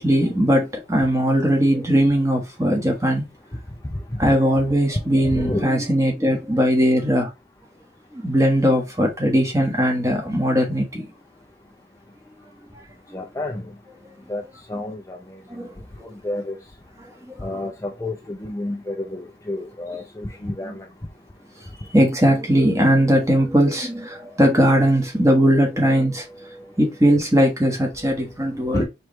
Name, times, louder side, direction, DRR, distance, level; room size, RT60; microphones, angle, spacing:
voice 1, 0.0-3.2 4.2-7.3 8.1-11.1 15.5-15.7 17.3-17.4 21.9-28.9, equal, 15° right, 1.3 m, -19 dB
voice 2, 5.2-5.7 13.1-13.7 14.3-14.4 14.7-15.4 16.2-16.6 17.4-20.9 21.8-21.9 28.7-28.9, left 1 dB, 15° left, 0.5 m, -29 dB
4.7 x 3.2 x 3.2 m
head